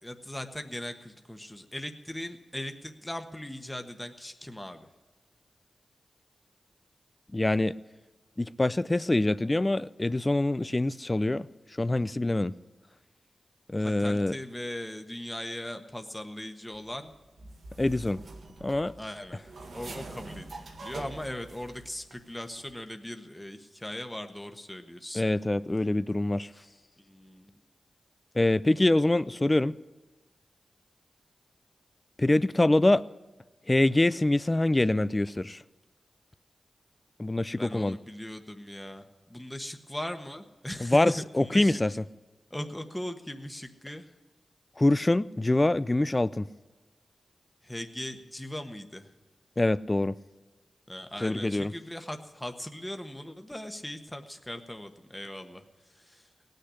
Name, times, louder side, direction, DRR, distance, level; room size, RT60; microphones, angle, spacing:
voice 1, 0.0-4.9 13.8-17.1 19.0-19.4 19.7-25.2 27.0-27.6 37.6-41.1 41.4-41.7 42.5-44.0 47.6-49.1 50.9-55.6 55.9-56.3, left 1 dB, 10° left, 6 dB, 1.3 m, -39 dB
voice 2, 7.3-7.8 8.4-11.5 11.8-12.5 13.7-14.3 17.8-18.2 18.6-18.9 25.1-26.5 28.3-29.8 32.2-33.0 33.7-35.6 37.2-38.0 40.8-42.0 44.8-46.5 49.6-50.2 51.2-51.7, left 2 dB, 25° left, 17 dB, 0.5 m, -25 dB
sound 1, 16.7-22.1 22.4-22.7, right 2 dB, 75° right, 1.8 m, -45 dB
17.5 x 6.7 x 9.9 m, 1.2 s
cardioid pair, 45°, 0 cm